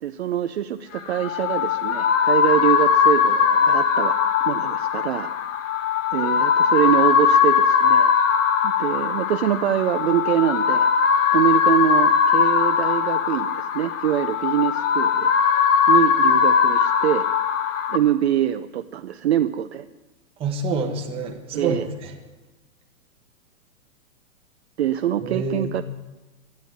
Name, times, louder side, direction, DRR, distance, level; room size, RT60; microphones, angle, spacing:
voice 1, 0.0-5.3 6.1-8.1 8.6-10.9 11.3-15.3 15.9-17.3 17.9-19.9 21.5-21.9 24.8-25.8, right 11 dB, 50° right, 9 dB, 0.5 m, -24 dB
sound 1, 1.0-18.0, left 7 dB, 60° left, 1.2 m, -20 dB
voice 2, 20.4-22.1 25.2-25.7, right 4 dB, 15° right, 3 dB, 1.0 m, -27 dB
11.5 x 11.0 x 9.4 m, 1.1 s
hypercardioid pair, 165°, 42 cm